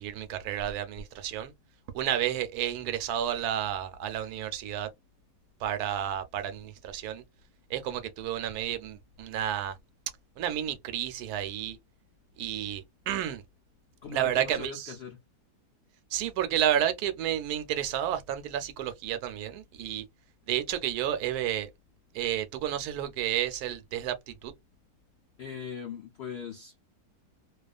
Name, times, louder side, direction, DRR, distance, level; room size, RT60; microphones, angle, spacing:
voice 1, 0.0-1.5 1.9-4.9 5.6-7.2 7.7-9.8 10.4-11.8 12.4-13.4 14.1-15.0 16.1-20.1 20.5-21.7 22.1-24.5, right 11 dB, 75° right, 1.1 m, -31 dB
voice 2, 14.0-15.2 25.4-26.9, left 6 dB, 85° left, 0.5 m, -40 dB
2.4 x 2.3 x 2.3 m
omnidirectional pair, 1.7 m